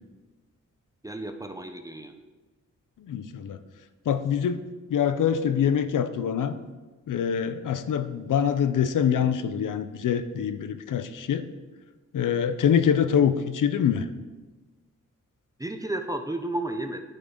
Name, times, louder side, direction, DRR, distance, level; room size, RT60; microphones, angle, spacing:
voice 1, 1.0-2.2 15.6-17.0, right 1 dB, 10° right, 6 dB, 0.7 m, -32 dB
voice 2, 3.0-3.6 4.1-4.6 4.9-6.6 7.1-11.5 12.1-14.1, left 8 dB, 85° left, 11 dB, 0.7 m, -24 dB
11.0 x 9.2 x 3.8 m, 1.2 s
cardioid pair, 85°, 31 cm